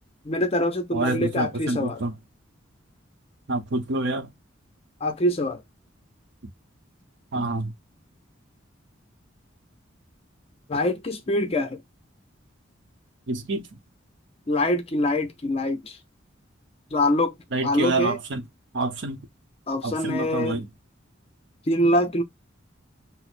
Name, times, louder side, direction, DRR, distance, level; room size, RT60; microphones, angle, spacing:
voice 1, 0.3-2.0 5.0-5.6 10.7-11.8 14.5-16.0 16.9-17.3 17.6-18.2 19.7-20.6 21.7-22.2, left 1 dB, 30° left, 0.6 m, -24 dB
voice 2, 0.9-2.1 3.5-4.3 7.3-7.7 13.3-13.8 17.5-18.4 18.7-19.2 19.8-20.7, right 2 dB, 65° right, 0.8 m, -27 dB
6.0 x 2.0 x 2.5 m
head